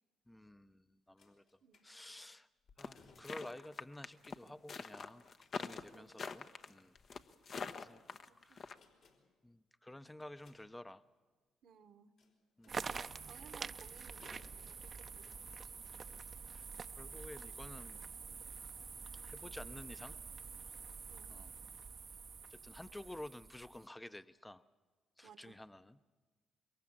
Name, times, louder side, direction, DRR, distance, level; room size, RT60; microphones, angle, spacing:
voice 1, 0.3-1.4 1.8-2.5 2.8-5.2 5.6-6.9 7.8-8.0 8.4-8.8 9.4-11.0 12.6-13.0 16.5-16.7 17.0-18.0 19.1-20.2 21.3-21.6 22.5-24.6 25.2-26.0, left 1 dB, 15° left, 13 dB, 0.7 m, -52 dB
sound 1, 1.2-2.2 2.6-3.6 4.9-5.9 7.0-8.2 8.6-9.4 10.2-11.2 12.2-13.0 14.1-15.0 15.8-15.9 16.3-16.4, left 4 dB, 70° left, 3.7 m, -67 dB
sound 2, 2.8-8.7, left 5 dB, 55° left, 1.0 m, -44 dB
voice 2, 5.9-6.3 8.3-8.6 11.6-12.1 12.7-15.4 21.1-21.3 25.2-25.6, right 7 dB, 65° right, 12 dB, 1.3 m, -61 dB
sound 3, 12.7-23.9, right 5 dB, 45° right, 0.7 m, -47 dB
25.5 x 22.5 x 7.4 m, 1.3 s
hypercardioid pair, 50°, 0 cm